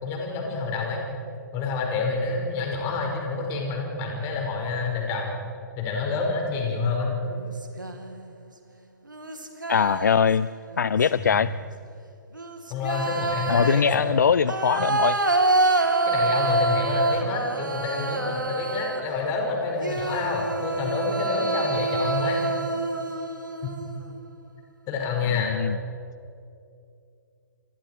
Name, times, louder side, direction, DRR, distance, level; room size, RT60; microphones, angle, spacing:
voice 1, 0.0-1.0 1.5-5.4 5.8-7.2 11.2-11.4 12.7-14.0 16.1-22.4 24.9-25.6, left 4 dB, 25° left, 1 dB, 5.2 m, -28 dB
sound 1, 7.3-8.1 9.1-10.4 10.7-11.3 12.3-19.2 19.8-24.1, right 2 dB, 75° right, 2.5 m, -27 dB
voice 2, 9.7-10.5 10.8-11.5 13.5-15.2 25.4-25.8, left 7 dB, 60° left, 17 dB, 0.4 m, -21 dB
27.5 x 25.0 x 4.7 m, 2.5 s
figure-of-eight pair, 120°, 10 cm